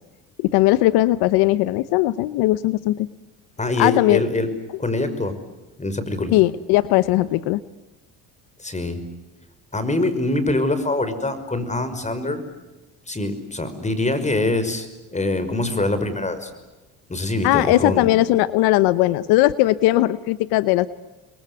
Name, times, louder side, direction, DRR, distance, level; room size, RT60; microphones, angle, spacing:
voice 1, 0.4-3.1 3.8-4.2 6.3-7.6 17.4-20.9, left 16 dB, 80° left, 16 dB, 1.0 m, -18 dB
voice 2, 3.6-4.5 4.8-5.4 5.8-6.3 8.6-9.0 9.7-12.4 13.1-16.5 17.1-18.0, left 2 dB, 20° left, 11 dB, 5.6 m, -24 dB
29.5 x 22.5 x 8.2 m, 1.1 s
supercardioid pair, 80°, 38 cm